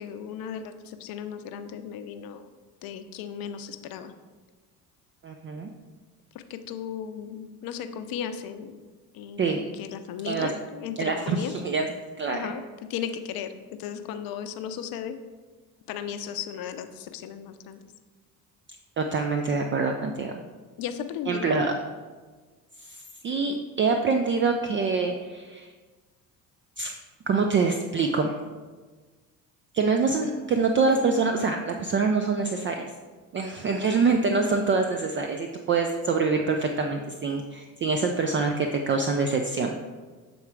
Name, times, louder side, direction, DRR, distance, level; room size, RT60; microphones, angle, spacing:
voice 1, 0.0-2.5 2.8-4.1 6.3-8.8 9.1-11.5 12.3-12.6 12.9-13.5 13.8-15.2 15.9-17.8 20.8-21.8, left 8 dB, 50° left, 9 dB, 0.7 m, -35 dB
voice 2, 5.2-5.7 9.4-9.6 10.3-10.5 11.0-11.9 12.2-12.5 19.0-20.3 21.3-21.7 22.8-25.7 26.8-26.9 27.3-28.3 29.7-32.9 33.3-39.7, right 4 dB, 25° right, 4 dB, 0.5 m, -25 dB
7.0 x 3.8 x 4.5 m, 1.4 s
figure-of-eight pair, 55°, 47 cm